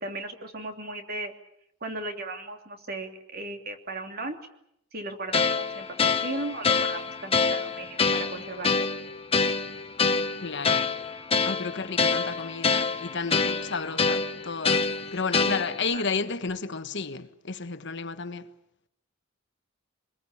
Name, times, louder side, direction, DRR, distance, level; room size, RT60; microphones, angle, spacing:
voice 1, 0.0-1.3 1.8-4.4 4.9-8.8 15.3-16.0, right 2 dB, 50° right, 3.1 m, -36 dB
sound 1, 5.3-15.9, left 5 dB, 30° left, 1.3 m, -26 dB
voice 2, 10.4-10.9 11.4-18.4, left 4 dB, 60° left, 1.3 m, -32 dB
25.5 x 21.5 x 8.8 m
head